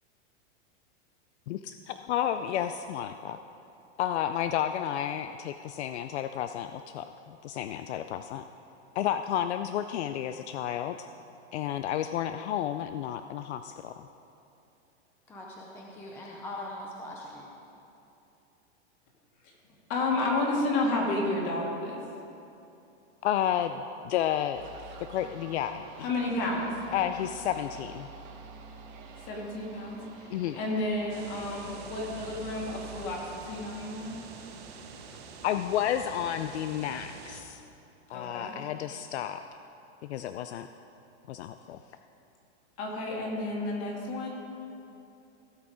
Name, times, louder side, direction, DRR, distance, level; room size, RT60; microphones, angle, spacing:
voice 1, 1.5-3.4 4.0-8.4 9.0-11.0 11.5-13.9 23.2-24.7 25.1-26.1 26.9-28.1 30.3-30.6 35.4-37.6 38.1-39.4 40.0-40.7 41.3-41.8, left 10 dB, 70° left, 9 dB, 0.5 m, -31 dB
voice 2, 15.3-17.5, left 1 dB, 5° left, -2 dB, 0.5 m, -41 dB
voice 3, 19.9-22.0 26.0-26.7 29.3-34.2 38.1-38.6 42.8-44.3, left 2 dB, 40° left, -2 dB, 2.4 m, -31 dB
sound 1, 24.5-33.1, right 4 dB, 40° right, 1.6 m, -47 dB
sound 2, 31.1-37.4, right 5 dB, 60° right, 1.5 m, -46 dB
16.5 x 6.1 x 5.0 m, 2.8 s
supercardioid pair, 160°, 34 cm